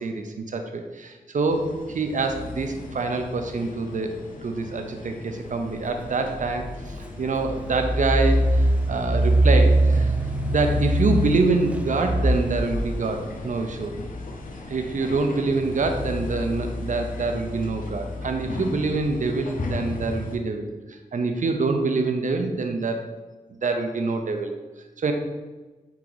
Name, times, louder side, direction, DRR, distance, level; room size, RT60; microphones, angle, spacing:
voice 1, 0.0-4.1 4.4-6.7 7.0-10.1 10.5-13.9 14.7-23.2 23.6-24.5 25.0-25.1, right 3 dB, 65° right, 5 dB, 0.6 m, -26 dB
sound 1, 1.5-20.4, left 3 dB, 75° left, 0.6 m, -36 dB
Engine, 6.3-6.4 7.0-12.9, right 1 dB, 10° right, 0.5 m, -22 dB
4.7 x 2.9 x 3.9 m, 1.2 s
cardioid pair, 60°, 14 cm